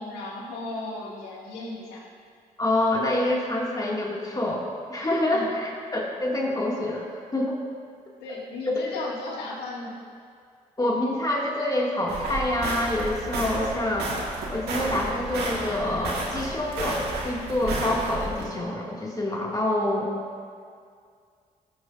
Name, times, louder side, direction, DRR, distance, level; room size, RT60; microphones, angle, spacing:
voice 1, 0.0-2.0 5.3-5.5 8.2-10.0, left 2 dB, 90° left, -5 dB, 2.2 m, -35 dB
voice 2, 2.6-7.6 8.7-8.9 10.8-14.2 14.5-20.1, left 1 dB, 25° left, -3 dB, 2.3 m, -26 dB
sound 1, 12.1-18.4, right 2 dB, 85° right, 1.7 m, -32 dB
15.5 x 8.5 x 2.6 m, 2.2 s
supercardioid pair, 55°, 16 cm